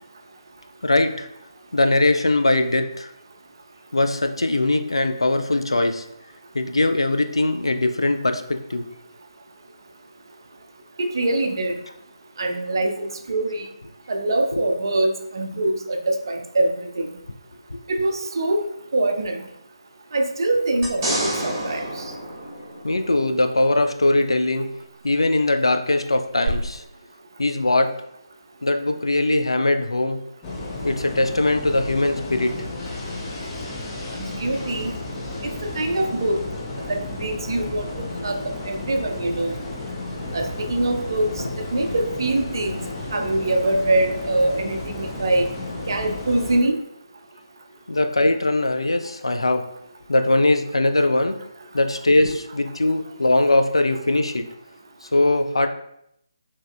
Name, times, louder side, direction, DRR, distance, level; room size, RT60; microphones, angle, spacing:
voice 1, 0.8-1.3 1.7-3.1 3.9-6.0 6.5-8.9 14.5-14.6 17.7-17.8 22.8-24.7 25.0-26.8 27.4-27.9 28.6-30.2 30.8-32.6 41.4-41.5 47.9-49.7 50.1-51.4 51.7-54.5 55.1-55.7, left 2 dB, 70° left, 7 dB, 0.4 m, -21 dB
voice 2, 11.0-11.8 12.4-13.7 14.1-17.1 17.9-18.7 18.9-19.4 20.1-21.8 34.2-35.0 35.4-36.4 36.9-37.8 38.2-38.4 38.7-39.6 40.3-41.3 41.7-42.8 43.1-45.5 45.9-46.8, right 2 dB, 50° right, 5 dB, 0.4 m, -23 dB
sound 1, 20.8-23.3 26.4-26.5, right 1 dB, 25° right, 0.9 m, -28 dB
sound 2, 30.4-46.6, left 2 dB, 15° left, 0.5 m, -33 dB
4.7 x 2.9 x 2.4 m, 0.74 s
figure-of-eight pair, 150°, 3 cm